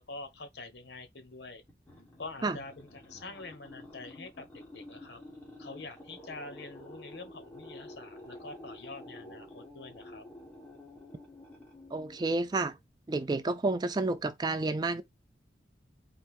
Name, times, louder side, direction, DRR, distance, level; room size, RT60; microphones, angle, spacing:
voice 1, 0.0-1.6 2.2-4.4 4.7-5.2 5.6-10.2, left 3 dB, 75° left, 1.1 m, -45 dB
sound 1, 1.7-12.8, left 1 dB, 15° left, 1.7 m, -50 dB
voice 2, 11.9-12.8 13.1-15.0, right 3 dB, 25° right, 0.3 m, -30 dB
4.3 x 2.6 x 3.6 m
head